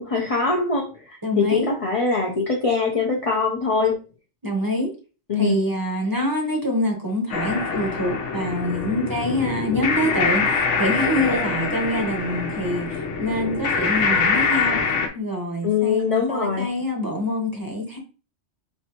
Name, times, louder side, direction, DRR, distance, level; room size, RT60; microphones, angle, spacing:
voice 1, 0.0-4.0 5.3-5.6 15.6-16.7, left 4 dB, 45° left, 0 dB, 0.4 m, -23 dB
voice 2, 1.2-1.7 4.4-4.9 5.4-14.8 15.1-18.0, left 1 dB, 20° right, 0 dB, 0.7 m, -25 dB
sound 1, 7.3-15.1, left 5 dB, 80° left, 1.0 m, -24 dB
4.2 x 3.2 x 2.8 m, 0.35 s
omnidirectional pair, 1.2 m